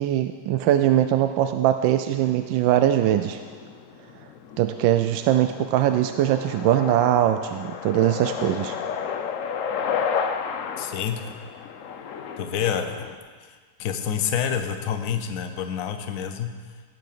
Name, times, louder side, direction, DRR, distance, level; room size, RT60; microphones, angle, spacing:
voice 1, 0.0-3.4 4.6-8.8, right 12 dB, 75° right, 8 dB, 1.2 m, -21 dB
sound 1, 2.1-13.2, left 7 dB, 75° left, 0.7 m, -33 dB
voice 2, 10.8-11.3 12.4-12.9 13.4-16.5, left 8 dB, 55° left, 7 dB, 1.0 m, -28 dB
17.0 x 6.2 x 6.7 m, 1.5 s
omnidirectional pair, 2.3 m